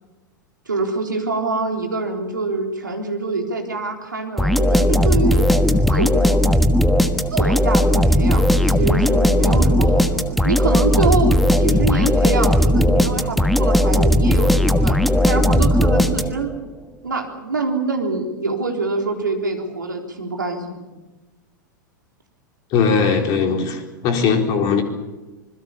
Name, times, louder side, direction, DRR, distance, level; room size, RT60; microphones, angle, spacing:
voice 1, 0.7-5.5 5.9-6.4 7.3-14.9 15.3-16.5 17.0-20.9, right 3 dB, 75° right, 3 dB, 3.8 m, -25 dB
sound 1, 4.4-16.6, left 1 dB, ahead, 1.3 m, -17 dB
voice 2, 22.7-24.8, left 5 dB, 40° left, 4 dB, 4.1 m, -19 dB
26.0 x 21.5 x 7.0 m, 1.1 s
figure-of-eight pair, 90°, 11 cm